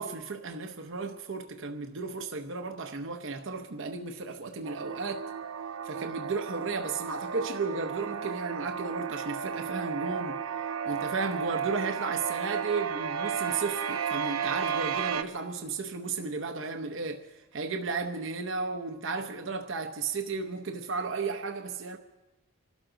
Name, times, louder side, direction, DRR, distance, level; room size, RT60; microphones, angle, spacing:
voice 1, 0.0-5.3 5.8-10.4 10.9-22.0, right 4 dB, 60° right, 0.9 m, -34 dB
sound 1, 4.6-15.2, right 7 dB, 90° right, 0.7 m, -33 dB
26.0 x 12.5 x 3.9 m
head